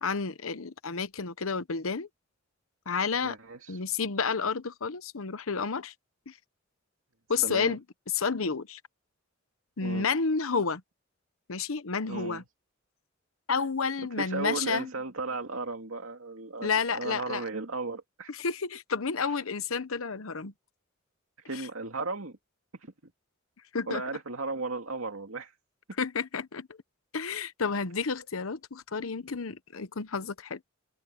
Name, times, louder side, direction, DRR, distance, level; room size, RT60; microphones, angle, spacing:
voice 1, 0.0-2.1 2.9-3.4 3.7-5.9 6.3-6.4 7.3-7.8 8.1-8.8 9.8-10.8 11.5-12.4 13.5-14.9 16.6-17.4 18.3-20.5 21.5-21.6 23.7-24.0 26.0-26.7 27.1-30.6, left 5 dB, 90° left, 1.0 m, -30 dB
voice 2, 3.2-3.8 7.4-7.8 9.8-10.1 12.1-12.4 14.2-18.3 19.2-19.4 21.4-22.4 22.8-22.9 23.9-25.5, right 3 dB, 85° right, 2.3 m, -35 dB
head